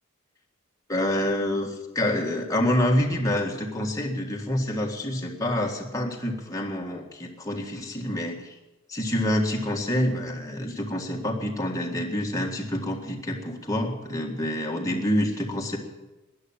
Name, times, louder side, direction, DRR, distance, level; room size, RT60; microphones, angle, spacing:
voice 1, 0.9-8.6 8.9-15.8, left 1 dB, 15° left, 0 dB, 1.8 m, -27 dB
13.0 x 10.5 x 8.6 m, 1.0 s
head